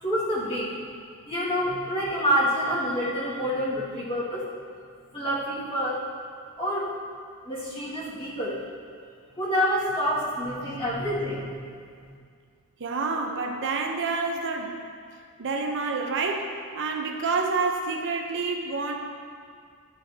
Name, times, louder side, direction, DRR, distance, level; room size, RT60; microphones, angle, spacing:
voice 1, 0.0-0.8 1.2-4.4 5.1-6.0 6.6-6.9 7.4-8.6 9.4-11.6 12.0-12.1, equal, 25° left, -9 dB, 1.9 m, -27 dB
voice 2, 12.8-14.8 15.4-19.0, right 4 dB, 60° right, 3 dB, 0.8 m, -28 dB
12.0 x 5.4 x 2.8 m, 2.1 s
head